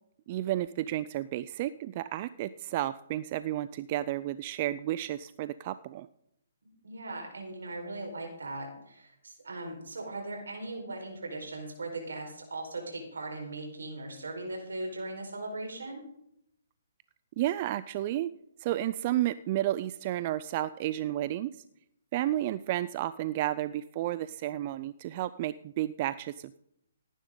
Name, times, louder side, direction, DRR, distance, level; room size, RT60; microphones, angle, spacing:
voice 1, 0.3-6.1 17.4-18.3 18.6-21.6 22.1-26.6, right 13 dB, 40° right, 15 dB, 0.4 m, -32 dB
voice 2, 6.6-16.0, right 2 dB, 80° right, 2 dB, 4.7 m, -39 dB
18.0 x 10.0 x 3.9 m, 0.77 s
hypercardioid pair, 140°, 0 cm